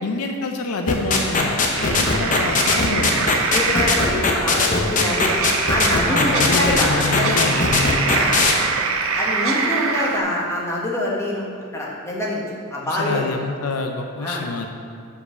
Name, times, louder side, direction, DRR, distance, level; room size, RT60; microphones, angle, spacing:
voice 1, 0.0-3.4 6.0-8.1 12.8-14.7, left 3 dB, 85° left, 4 dB, 0.6 m, -26 dB
sound 1, 0.9-8.5, left 4 dB, 35° left, 0.7 m, -19 dB
sound 2, 1.7-10.2, right 5 dB, 65° right, 0.6 m, -24 dB
voice 2, 3.5-5.4 5.7-7.4 8.1-8.4 9.1-11.4 11.7-12.4 12.7-13.2 14.2-14.4, left 1 dB, 10° left, -4 dB, 1.2 m, -25 dB
5.5 x 5.0 x 6.4 m, 2.2 s
head